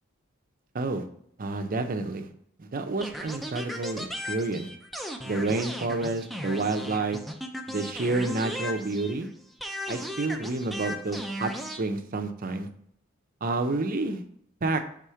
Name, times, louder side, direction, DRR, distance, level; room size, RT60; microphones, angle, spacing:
voice 1, 1.4-2.3 2.6-4.7 5.2-7.2 7.7-9.3 9.9-11.5 11.8-12.7 13.4-14.2 14.6-14.8, right 3 dB, 45° right, 6 dB, 0.6 m, -29 dB
sound 1, 3.0-9.3 9.6-11.8, equal, ahead, 0.4 m, -36 dB
4.9 x 3.5 x 5.6 m, 0.68 s
head